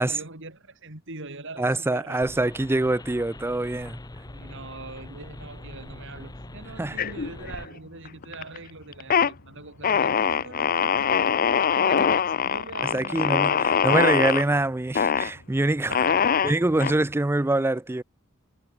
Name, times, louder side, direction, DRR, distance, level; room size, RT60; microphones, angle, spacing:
voice 1, 0.0-2.2 4.2-11.3 11.7-14.0 15.9-16.4, right 2 dB, 60° right, 4.5 m, -42 dB
voice 2, 1.6-4.0 6.8-7.0 12.9-16.0 16.4-18.0, right 2 dB, 10° right, 0.4 m, -24 dB
sound 1, 2.2-7.7, left 1 dB, 20° left, 0.8 m, -42 dB
sound 2, 5.3-17.2, left 1 dB, 80° left, 3.6 m, -53 dB
sound 3, 7.0-7.7 8.0-8.6 8.9-9.3 9.8-14.4 14.9-15.3 15.9-16.9, left 7 dB, 40° left, 0.5 m, -23 dB
head